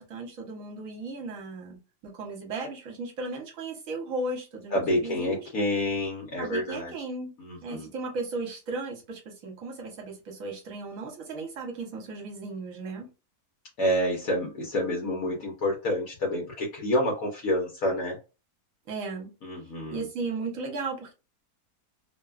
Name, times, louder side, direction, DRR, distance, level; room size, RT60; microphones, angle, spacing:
voice 1, 0.0-5.4 6.4-7.3 7.6-13.1 18.9-19.3 19.9-21.1, right 3 dB, 65° right, 1.2 m, -35 dB
voice 2, 4.7-6.9 7.4-7.9 13.8-18.2 19.4-20.0, left 1 dB, 70° left, 1.2 m, -28 dB
2.9 x 2.2 x 2.3 m
omnidirectional pair, 1.6 m